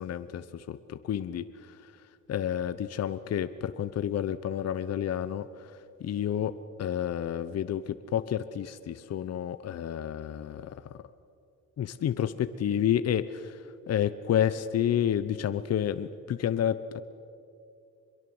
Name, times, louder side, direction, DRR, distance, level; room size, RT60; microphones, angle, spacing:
voice 1, 0.0-1.9 2.3-6.5 6.8-11.0 11.8-17.0, left 10 dB, 55° left, 12 dB, 0.9 m, -30 dB
24.5 x 22.0 x 7.9 m, 2.5 s
cardioid pair, 90°, 30 cm